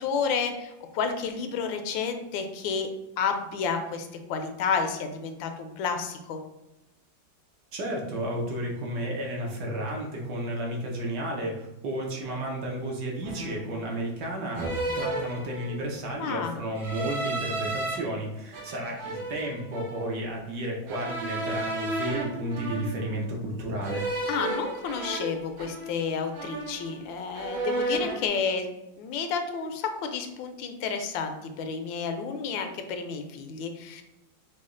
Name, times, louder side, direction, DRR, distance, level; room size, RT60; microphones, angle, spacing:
voice 1, 0.0-2.9 3.2-6.4 16.2-16.6 24.3-28.7 29.0-34.0, left 5 dB, 80° left, 6 dB, 1.3 m, -31 dB
voice 2, 7.7-24.0, right 1 dB, 65° right, -1 dB, 1.4 m, -32 dB
sound 1, 12.1-12.4 13.2-13.8 14.5-16.0 16.8-18.0 18.5-20.1 20.9-23.2 23.8-26.1 26.3-27.1 27.3-28.3, right 2 dB, 90° right, 1.7 m, -33 dB
4.9 x 2.3 x 3.7 m, 0.93 s
omnidirectional pair, 2.1 m